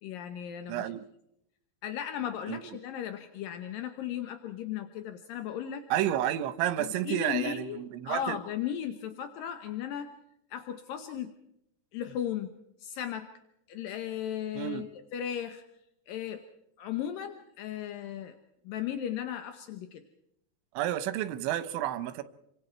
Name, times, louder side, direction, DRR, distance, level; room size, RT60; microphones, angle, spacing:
voice 1, 0.0-0.9 1.8-5.8 6.8-10.1 10.5-11.3 11.9-13.3 13.7-15.6 16.1-16.4 16.8-18.4 18.6-20.0, left 10 dB, 75° left, 2.1 m, -36 dB
voice 2, 0.7-1.0 2.5-2.6 5.9-8.4 14.5-14.9 20.7-22.2, right 12 dB, 85° right, 3.4 m, -31 dB
29.0 x 24.5 x 4.5 m
omnidirectional pair, 5.3 m